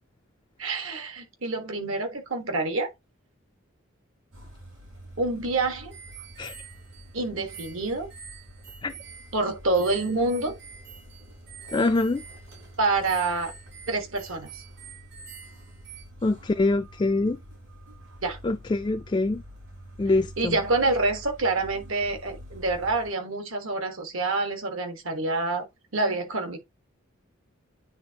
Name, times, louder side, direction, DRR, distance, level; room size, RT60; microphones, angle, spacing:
voice 1, 0.6-2.9 5.2-5.9 7.1-8.1 9.3-10.5 12.8-13.5 13.9-14.6 18.2-18.4 20.4-25.7 25.9-26.6, right 3 dB, 70° right, 1.5 m, -27 dB
sound 1, 4.3-23.1, equal, 90° right, 4.8 m, -47 dB
sound 2, 5.9-16.0, right 7 dB, 50° right, 1.4 m, -47 dB
voice 2, 11.7-12.2 16.2-17.4 18.4-19.4 20.0-20.6, left 2 dB, 20° left, 0.3 m, -24 dB
9.5 x 3.5 x 2.8 m
head